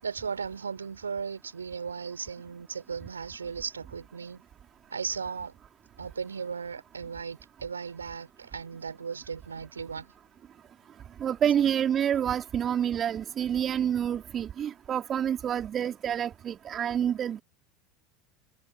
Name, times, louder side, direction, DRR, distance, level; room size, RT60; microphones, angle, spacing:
voice 1, 0.0-4.4 4.9-5.5 6.0-10.1, right 6 dB, 80° right, 6.5 m, -36 dB
voice 2, 11.2-17.4, right 9 dB, 35° right, 3.9 m, -28 dB
figure-of-eight pair, 75°, 0 cm